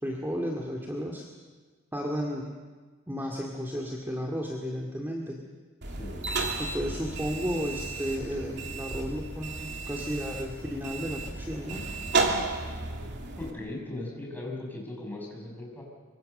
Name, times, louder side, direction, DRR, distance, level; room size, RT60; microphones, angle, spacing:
voice 1, 0.0-1.2 1.9-2.5 3.1-5.4 6.6-11.8, equal, 10° right, -1 dB, 2.2 m, -33 dB
sound 1, 5.8-13.5, right 3 dB, 55° right, 2.8 m, -33 dB
voice 2, 5.9-6.3 12.9-13.1 13.4-15.8, left 2 dB, 10° left, -1 dB, 6.5 m, -38 dB
24.5 x 24.5 x 6.8 m, 1.4 s
head